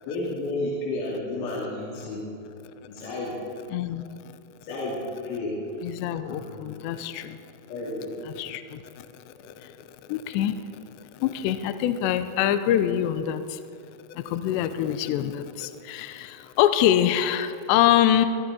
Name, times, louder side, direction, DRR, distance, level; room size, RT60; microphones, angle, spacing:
voice 1, 0.1-2.2 2.9-3.3 4.6-5.6 6.2-6.6 7.7-8.4 9.3-9.5, left 2 dB, 70° left, -7 dB, 5.0 m, -32 dB
voice 2, 3.7-4.3 5.8-7.5 8.3-9.8 10.1-10.6 10.9-13.6 14.1-18.3, left 11 dB, 85° left, 10 dB, 2.6 m, -25 dB
23.5 x 13.0 x 4.2 m, 2.5 s
omnidirectional pair, 5.7 m